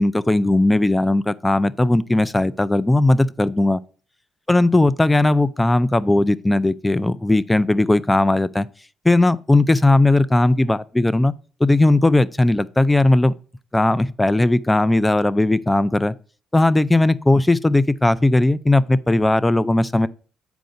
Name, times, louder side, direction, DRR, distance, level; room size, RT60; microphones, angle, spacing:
voice 1, 0.0-3.8 4.5-8.7 9.0-11.3 11.6-13.3 13.7-16.2 16.5-20.1, left 2 dB, 15° left, 0.4 m, -17 dB
7.8 x 4.7 x 5.2 m
cardioid pair, 90°, 0 cm